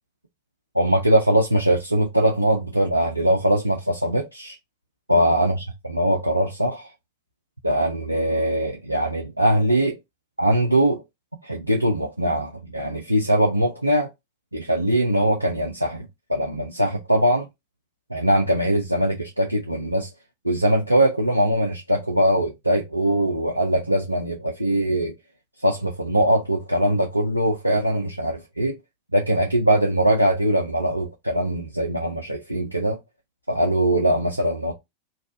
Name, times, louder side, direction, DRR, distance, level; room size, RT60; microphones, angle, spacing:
voice 1, 0.7-4.6 5.1-6.9 7.6-10.0 10.4-11.0 11.4-14.1 14.5-17.5 18.1-20.1 20.4-25.1 25.6-28.8 29.1-33.0 33.5-34.7, right 1 dB, 85° right, 0.5 m, -21 dB
3.3 x 2.3 x 2.6 m
figure-of-eight pair, 90°, 0 cm